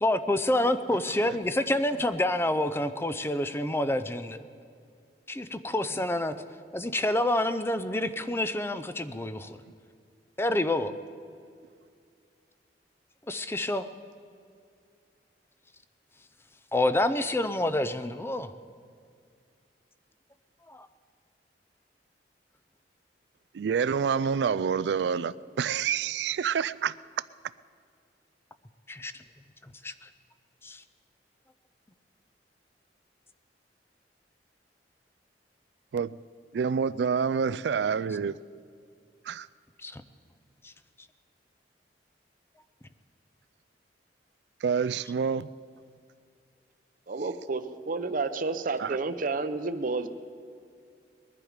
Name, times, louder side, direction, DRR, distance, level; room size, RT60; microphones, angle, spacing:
voice 1, 0.0-4.4 5.3-6.3 6.7-9.6 10.4-10.9 13.3-13.8 16.7-18.5 20.7-20.9 28.9-29.1 29.8-30.1 30.6-30.8 39.8-40.0 40.6-40.7, left 1 dB, 15° left, 11 dB, 0.5 m, -28 dB
voice 2, 23.5-26.9 35.9-36.2 36.5-38.4 39.3-39.5 44.6-45.5 48.8-49.0, right 6 dB, 70° right, 17 dB, 0.3 m, -27 dB
voice 3, 47.1-50.1, right 3 dB, 50° right, 10 dB, 0.7 m, -30 dB
21.5 x 11.0 x 5.0 m, 2.2 s
head